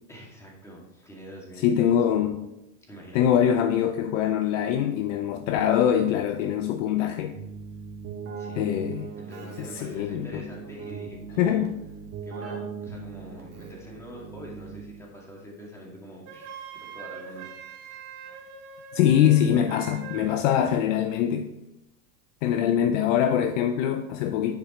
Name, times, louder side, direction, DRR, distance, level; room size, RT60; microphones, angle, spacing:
voice 1, 0.1-2.0 2.9-3.2 8.4-8.8 9.2-11.7 12.2-17.5, equal, 5° left, -3 dB, 2.1 m, -44 dB
voice 2, 1.6-2.4 3.1-7.4 8.5-9.1 9.6-10.5 11.4-11.7 18.9-21.5 22.4-24.6, left 9 dB, 50° left, 8 dB, 0.6 m, -23 dB
Keyboard (musical), 7.3-15.2, right 5 dB, 30° right, 1.9 m, -39 dB
Wind instrument woodwind instrument, 16.2-20.4, right 7 dB, 50° right, 1.4 m, -42 dB
10.5 x 5.0 x 4.3 m, 0.93 s
supercardioid pair, 135°, 47 cm